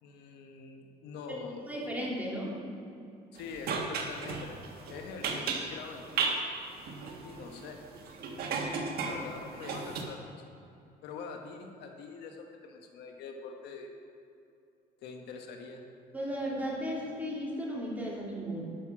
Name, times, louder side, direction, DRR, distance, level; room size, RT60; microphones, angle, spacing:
voice 1, 0.0-1.6 3.3-4.6 4.9-6.3 7.2-7.8 9.0-10.2 11.0-13.9 15.0-15.8, left 5 dB, 80° left, 3 dB, 1.2 m, -44 dB
voice 2, 1.7-2.5 16.1-18.8, equal, 10° right, -4 dB, 3.0 m, -35 dB
sound 1, 3.4-6.4 6.8-10.0, right 5 dB, 65° right, 1.5 m, -34 dB
11.5 x 6.6 x 6.1 m, 2.6 s
cardioid pair, 110°, 17 cm